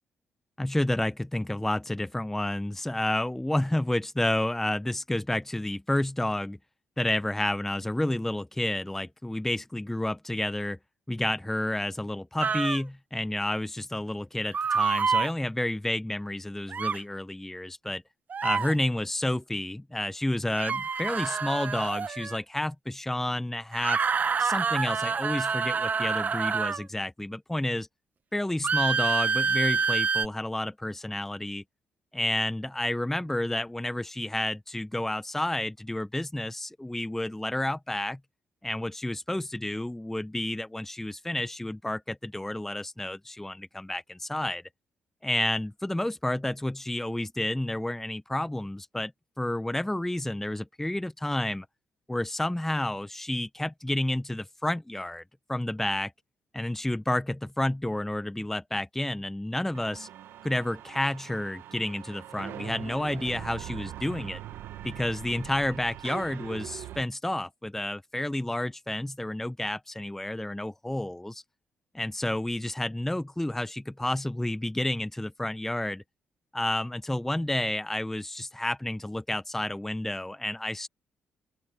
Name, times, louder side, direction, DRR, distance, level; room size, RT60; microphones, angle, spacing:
voice 1, 0.6-6.6 7.0-10.8 11.1-18.0 18.4-24.0 24.4-27.9 28.3-31.6 32.1-38.2 38.6-44.6 45.2-49.1 49.4-51.7 52.1-55.2 55.5-56.1 56.5-60.1 60.4-64.4 64.8-71.4 71.9-76.0 76.5-80.9, left 1 dB, 10° left, 0.7 m, -30 dB
sound 1, 12.4-12.8 14.5-15.3 16.7-17.0 18.3-18.7 20.5-22.4 23.7-26.8 28.6-30.3, right 5 dB, 45° right, 1.0 m, -27 dB
sound 2, 59.7-67.0, right 12 dB, 85° right, 1.2 m, -42 dB
open air
cardioid pair, 75°, 4 cm